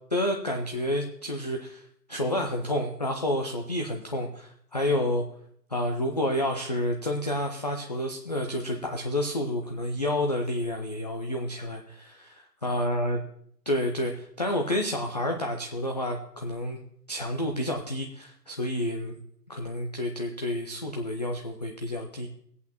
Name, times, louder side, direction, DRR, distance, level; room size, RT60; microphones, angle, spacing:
voice 1, 0.1-5.2 5.7-13.2 13.7-16.8 17.1-19.1 19.5-22.3, left 1 dB, 25° left, 2 dB, 0.5 m, -29 dB
18.0 x 8.3 x 2.9 m, 0.68 s
figure-of-eight pair, 140°, 49 cm